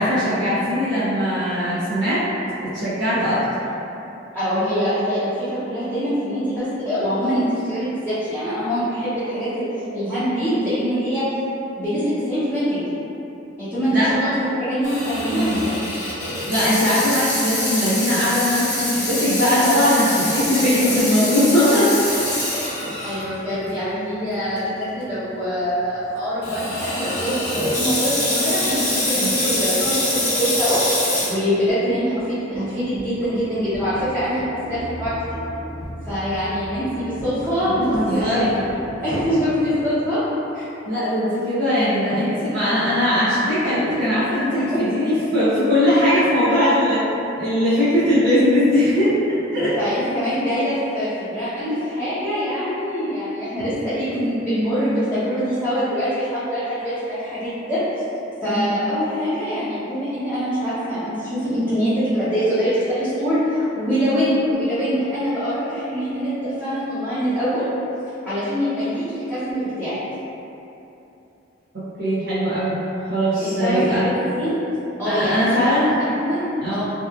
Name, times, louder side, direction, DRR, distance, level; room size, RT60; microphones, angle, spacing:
voice 1, 0.0-2.2 2.6-3.4 13.9-14.1 15.3-15.6 16.5-22.2 29.1-29.3 37.7-38.5 40.9-47.1 47.4-49.8 58.5-58.7 71.7-72.8 73.1-74.0 75.0-75.9 76.6-76.8, equal, 60° right, -12 dB, 0.6 m, -20 dB
voice 2, 4.3-9.7 9.9-11.3 11.8-12.8 13.6-15.7 20.5-20.9 22.5-30.8 31.2-35.4 36.1-38.7 39.0-40.2 40.5-40.7 44.4-44.8 49.8-57.8 58.4-67.7 68.3-70.0 73.4-74.6 75.0-76.8, equal, 10° right, -16 dB, 0.6 m, -24 dB
Water tap faucet / Sink (filling or washing), 14.8-23.2 23.7-23.8 24.6-24.8 26.4-31.3, left 1 dB, 45° left, 0.8 m, -24 dB
sound 1, 31.7-40.0, equal, 75° left, 0.7 m, -36 dB
2.8 x 2.3 x 2.2 m, 2.9 s
head